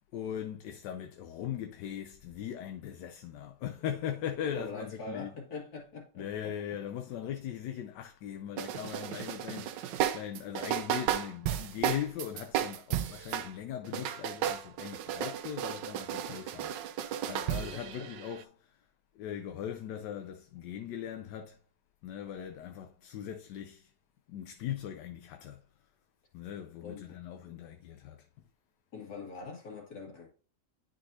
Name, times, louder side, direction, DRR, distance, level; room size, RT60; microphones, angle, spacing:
voice 1, 0.1-5.3 6.2-18.8 19.1-21.6 22.0-23.9 24.3-25.7 26.3-28.3, left 9 dB, 75° left, 1.2 m, -40 dB
voice 2, 4.5-6.5 16.3-16.5 17.7-18.1 26.8-27.2 28.9-30.4, left 3 dB, 60° left, 2.5 m, -43 dB
sound 1, 8.6-13.5 13.8-18.4, right 11 dB, 80° right, 1.3 m, -34 dB
10.5 x 4.0 x 2.7 m
omnidirectional pair, 1.9 m